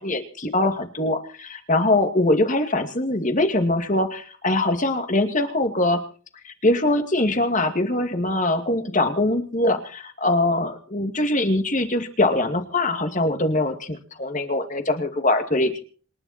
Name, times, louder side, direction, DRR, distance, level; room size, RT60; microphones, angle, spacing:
voice 1, 0.0-6.0 6.4-15.8, left 2 dB, 40° left, 6 dB, 2.3 m, -22 dB
27.5 x 11.0 x 4.3 m, 0.40 s
head